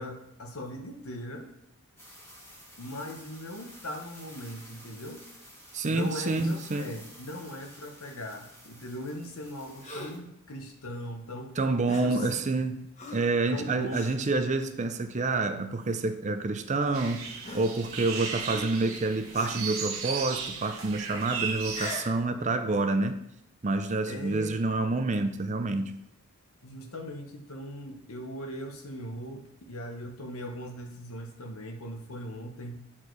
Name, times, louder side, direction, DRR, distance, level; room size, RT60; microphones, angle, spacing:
voice 1, 0.0-1.5 2.8-5.2 5.9-11.5 12.0-12.3 13.5-14.2 24.1-24.6 26.6-32.8, equal, 80° left, 4 dB, 1.1 m, -39 dB
sound 1, 2.0-10.2, equal, 10° left, 1.8 m, -51 dB
voice 2, 5.7-6.9 11.6-12.8 13.1-23.2 23.6-26.0, right 3 dB, 35° right, 8 dB, 0.5 m, -28 dB
Gasp, 9.8-10.3 11.9-12.2 13.0-13.3 13.9-14.2 14.9-15.1 16.1-16.2 17.4-18.1 18.5-18.9 19.3-19.7 21.6-22.2, left 2 dB, 35° left, 1.1 m, -41 dB
sound 2, 16.9-21.9, right 6 dB, 70° right, 1.2 m, -36 dB
8.6 x 4.5 x 4.6 m, 0.78 s
head